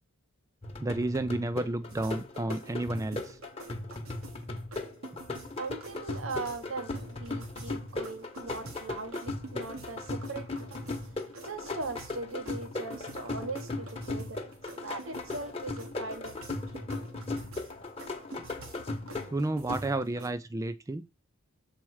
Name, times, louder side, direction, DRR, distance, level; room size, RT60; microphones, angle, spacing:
sound 1, 0.6-20.3, left 2 dB, 30° left, 1.0 m, -38 dB
voice 1, 0.8-3.4 19.3-21.0, right 2 dB, 15° right, 0.3 m, -31 dB
sound 2, 1.9-20.3, right 2 dB, 85° right, 1.5 m, -49 dB
voice 2, 5.6-10.7 11.4-14.4 14.7-16.4 16.7-16.9, right 3 dB, 70° right, 1.1 m, -40 dB
7.3 x 4.4 x 4.7 m
head